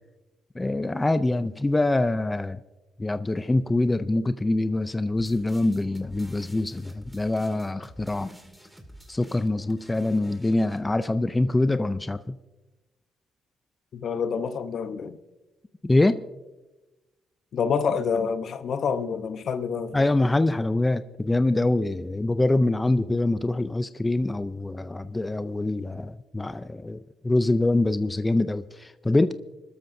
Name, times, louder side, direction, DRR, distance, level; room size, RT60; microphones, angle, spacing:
voice 1, 0.6-2.6 3.0-8.3 9.1-12.3 15.8-16.2 19.9-27.0 27.2-29.3, left 2 dB, 15° left, 0.5 m, -24 dB
sound 1, 5.2-10.8, equal, 5° right, 2.1 m, -49 dB
voice 2, 13.9-15.2 17.5-20.1, left 6 dB, 60° left, 0.9 m, -27 dB
25.5 x 13.0 x 2.7 m
cardioid pair, 90°, 0 cm